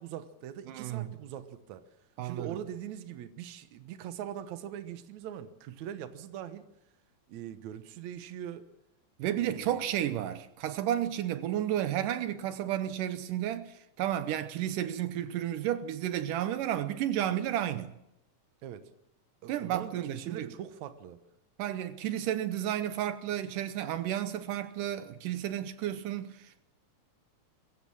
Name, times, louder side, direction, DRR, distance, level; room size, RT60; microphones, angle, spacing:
voice 1, 0.0-1.8 2.2-6.6 7.3-8.7 9.4-9.9 18.6-18.9 19.4-21.2, right 10 dB, 65° right, 2.4 m, -42 dB
voice 2, 0.7-1.1 2.2-2.6 9.2-18.0 19.5-20.5 21.6-26.6, right 11 dB, 85° right, 2.5 m, -32 dB
22.0 x 16.0 x 7.3 m
omnidirectional pair, 3.7 m